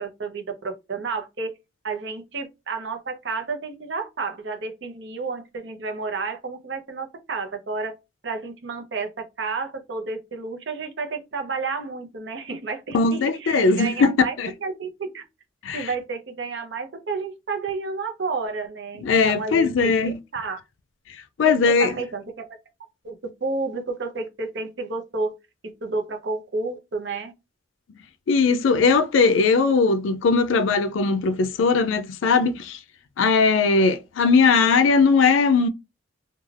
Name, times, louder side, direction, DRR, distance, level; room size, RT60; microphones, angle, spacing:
voice 1, 0.0-1.5 1.8-7.9 8.2-14.4 14.6-15.2 15.7-20.6 21.4-25.3 25.8-27.3, right 4 dB, 65° right, 0.7 m, -31 dB
voice 2, 12.9-14.1 14.4-14.5 15.6-15.9 19.0-20.2 21.4-21.9 28.3-32.8 33.2-35.7, left 4 dB, 90° left, 0.4 m, -19 dB
3.2 x 2.3 x 2.4 m
head